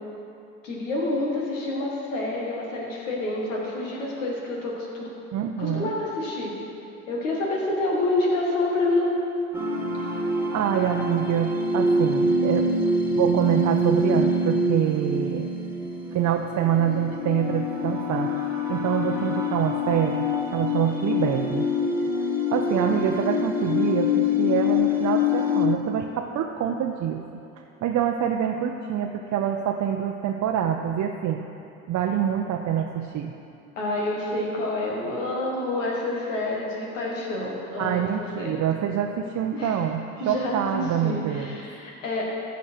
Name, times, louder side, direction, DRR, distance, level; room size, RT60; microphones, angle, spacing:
voice 1, 0.6-5.1 5.6-6.5 7.1-9.1 33.8-38.0 38.4-38.6 39.5-39.8 40.2-42.2, left 2 dB, 90° left, -2 dB, 1.8 m, -28 dB
voice 2, 5.3-5.9 10.5-12.7 13.2-15.5 16.1-18.3 18.7-21.7 22.0-22.2 22.5-27.2 27.8-31.4 31.9-33.3 37.8-41.6, right 9 dB, 50° right, 2 dB, 0.7 m, -26 dB
sound 1, 9.5-25.7, left 2 dB, 5° right, 1.8 m, -25 dB
14.5 x 5.2 x 4.4 m, 2.7 s
hypercardioid pair, 65°, 37 cm